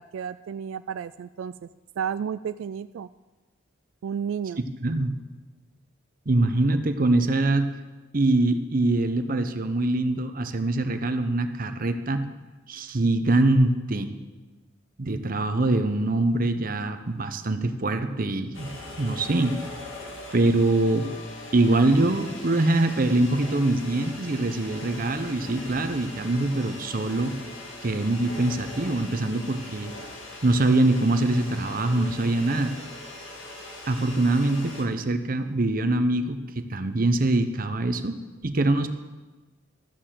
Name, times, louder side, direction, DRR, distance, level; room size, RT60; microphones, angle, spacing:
voice 1, 0.0-1.7 2.0-3.1 4.0-4.6, right 7 dB, 80° right, 12 dB, 0.3 m, -32 dB
voice 2, 4.8-5.1 6.3-7.7 8.1-12.2 12.7-14.1 15.0-18.7 19.0-19.6 20.3-21.1 21.5-27.3 27.8-29.9 30.4-32.7 33.9-38.2 38.4-38.9, right 2 dB, 45° right, 8 dB, 0.8 m, -23 dB
sound 1, 18.5-34.8, left 1 dB, 75° left, 2.1 m, -41 dB
13.5 x 6.8 x 7.5 m, 1.2 s
head